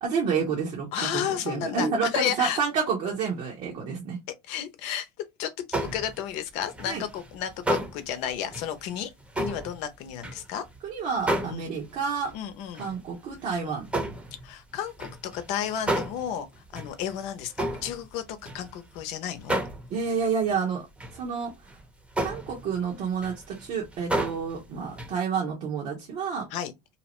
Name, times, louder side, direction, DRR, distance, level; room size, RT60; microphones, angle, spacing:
voice 1, 0.0-4.2 6.9-7.0 10.8-12.3 12.8-13.9 19.9-20.9 21.1-21.5 22.2-26.5, right 6 dB, 60° right, 1.0 m, -29 dB
voice 2, 0.9-1.9 2.1-2.6 4.5-9.1 9.4-10.6 11.5-11.7 12.3-12.9 13.6-13.7 14.4-16.5 16.7-17.5 17.8-19.6 26.5-26.7, left 9 dB, 70° left, 0.7 m, -32 dB
sound 1, 5.7-6.3 6.6-10.8 11.1-12.3 12.7-13.0 13.3-19.0 19.4-20.2 20.5-20.6 21.0-21.2 21.7-21.8 22.2-24.6 24.9-25.2, right 1 dB, 10° right, 0.8 m, -32 dB
2.8 x 2.0 x 2.9 m
supercardioid pair, 95°, 12 cm